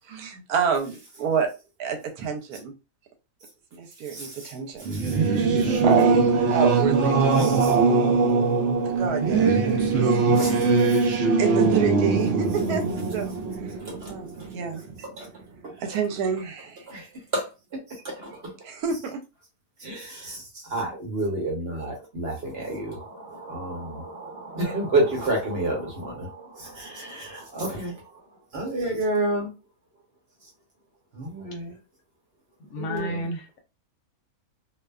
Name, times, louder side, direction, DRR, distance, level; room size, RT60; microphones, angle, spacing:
voice 1, 0.1-1.5 1.8-2.7 3.7-5.0 5.8-6.3 6.5-8.1 8.8-10.1 11.4-12.8 13.1-13.4 14.1-14.8 15.8-16.9 18.6-19.2, right 6 dB, 80° right, 1.1 m, -28 dB
voice 2, 4.1-4.5 4.9-5.4 7.4-7.8 10.3-11.0 13.8-14.5 15.0-15.3 15.6-16.0 16.9-17.1 17.3-18.5 19.8-28.2 28.5-29.5 31.1-31.8 32.7-33.3, right 2 dB, 45° right, 1.1 m, -30 dB
Singing / Musical instrument, 4.8-14.9, right 4 dB, 65° right, 0.8 m, -21 dB
voice 3, 32.7-33.6, equal, 70° left, 0.9 m, -31 dB
2.6 x 2.2 x 2.2 m
omnidirectional pair, 1.6 m